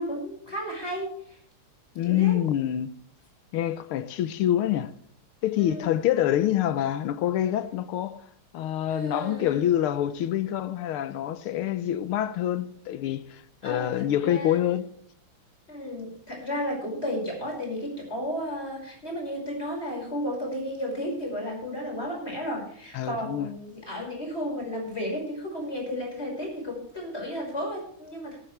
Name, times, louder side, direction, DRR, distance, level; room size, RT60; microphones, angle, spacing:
voice 1, 0.0-1.4 2.0-2.4 5.6-5.9 8.9-9.6 13.6-14.6 15.7-28.4, equal, 30° left, 5.9 m, -33 dB
voice 2, 2.0-2.9 3.5-4.9 5.4-8.3 8.5-14.9 22.9-23.5, left 11 dB, 85° left, 1.7 m, -26 dB
18.5 x 12.0 x 3.3 m
omnidirectional pair, 2.4 m